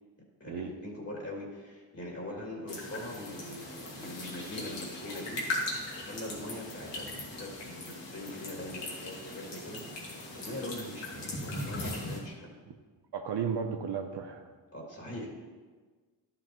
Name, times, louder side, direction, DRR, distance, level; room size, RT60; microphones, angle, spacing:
voice 1, 0.4-5.4 6.0-12.6 14.7-15.3, left 1 dB, 35° left, -2 dB, 2.4 m, -42 dB
sound 1, 2.7-12.2, left 2 dB, 85° left, 2.3 m, -39 dB
voice 2, 13.1-14.5, right 6 dB, 70° right, 4 dB, 0.7 m, -34 dB
11.5 x 7.0 x 3.0 m, 1.4 s
cardioid pair, 60°, 42 cm